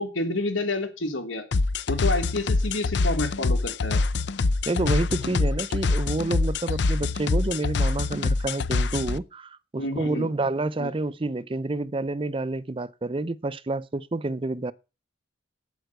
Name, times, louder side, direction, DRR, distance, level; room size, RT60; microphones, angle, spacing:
voice 1, 0.0-1.4 1.9-4.0 9.8-10.3 10.8-10.9, left 2 dB, 85° left, 3.3 m, -29 dB
sound 1, 1.5-9.2, left 3 dB, 60° left, 0.5 m, -25 dB
voice 2, 4.7-14.7, right 2 dB, 25° right, 0.5 m, -29 dB
9.0 x 8.1 x 7.8 m
head